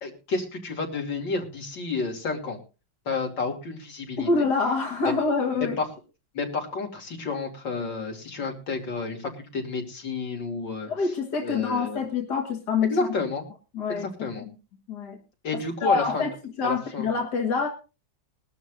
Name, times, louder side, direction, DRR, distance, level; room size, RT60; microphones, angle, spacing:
voice 1, 0.0-2.6 3.1-4.3 5.8-5.9 6.3-10.9 11.4-12.0 12.8-13.4 13.9-14.4 15.4-16.3 16.6-17.1, left 4 dB, 85° left, 2 dB, 3.5 m, -30 dB
voice 2, 4.2-5.8 10.9-12.9 13.7-14.5 14.9-15.2 15.5-16.3 16.6-17.7, left 4 dB, 65° left, 3 dB, 2.1 m, -26 dB
21.0 x 12.5 x 2.5 m, 0.30 s
omnidirectional pair, 2.0 m